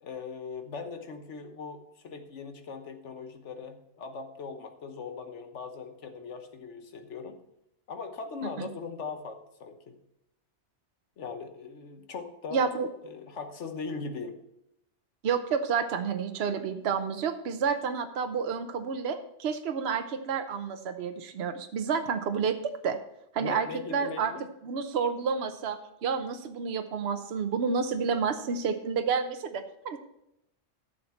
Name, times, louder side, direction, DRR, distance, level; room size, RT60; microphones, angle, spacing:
voice 1, 0.0-7.4 7.9-10.0 11.2-12.8 13.0-14.4 23.4-24.4, left 5 dB, 85° left, 7 dB, 1.4 m, -40 dB
voice 2, 12.5-12.9 15.2-23.0 23.3-24.3 24.6-30.0, right 6 dB, 65° right, 7 dB, 1.0 m, -30 dB
12.0 x 7.1 x 4.4 m, 0.84 s
omnidirectional pair, 1.2 m